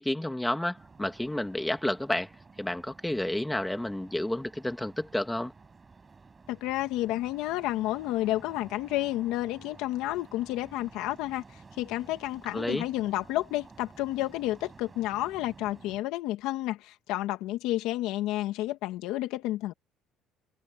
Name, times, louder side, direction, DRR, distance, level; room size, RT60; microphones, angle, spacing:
voice 1, 0.0-2.3 2.6-5.5 12.5-12.8, left 1 dB, 5° left, 2.2 m, -30 dB
sound 1, 0.7-16.0, right 4 dB, 20° right, 5.7 m, -53 dB
voice 2, 6.5-19.7, left 15 dB, 85° left, 2.1 m, -31 dB
cardioid pair, 145°, 0 cm